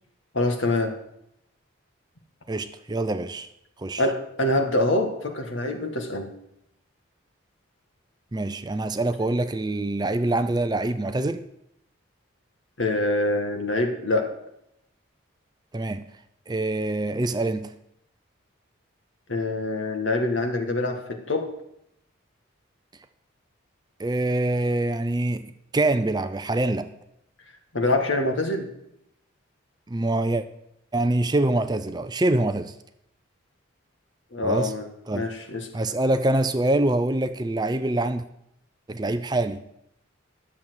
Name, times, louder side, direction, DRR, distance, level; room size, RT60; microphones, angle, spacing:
voice 1, 0.3-1.0 4.0-6.3 12.8-14.3 19.3-21.5 27.7-28.7 34.3-34.9 35.1-35.7, left 2 dB, 65° left, 1.8 m, -25 dB
voice 2, 2.5-3.5 3.8-4.0 8.3-11.5 15.7-16.1 16.5-17.7 24.0-26.9 29.9-30.5 30.9-32.7 34.4-34.7 35.1-35.3 35.7-38.2 38.9-39.6, right 2 dB, 20° right, 0.4 m, -25 dB
11.0 x 7.2 x 7.9 m
head